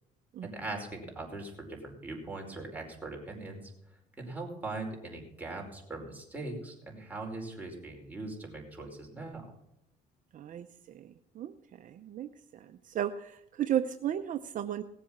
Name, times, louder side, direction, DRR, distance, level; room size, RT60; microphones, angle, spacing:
voice 1, 0.4-3.7 4.2-9.4, right 2 dB, 10° right, -1 dB, 4.9 m, -40 dB
voice 2, 10.3-10.7 10.9-11.1 11.4-11.5 11.8-14.8, right 10 dB, 50° right, 9 dB, 0.7 m, -34 dB
18.0 x 7.8 x 7.2 m, 0.83 s
cardioid pair, 110°, 17 cm